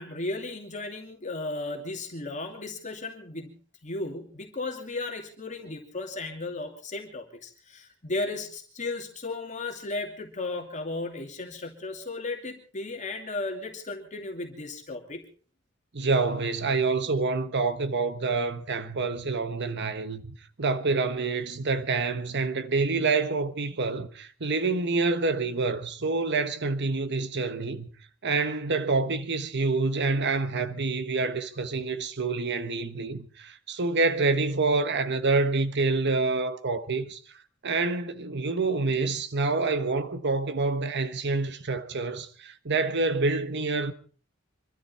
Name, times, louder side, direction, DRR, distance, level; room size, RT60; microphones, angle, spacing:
voice 1, 0.0-3.6 3.8-15.2, left 2 dB, 35° left, 2.7 m, -35 dB
voice 2, 15.9-27.9 28.2-37.2 37.6-43.9, right 3 dB, 55° right, 1.2 m, -27 dB
25.5 x 13.0 x 4.3 m
head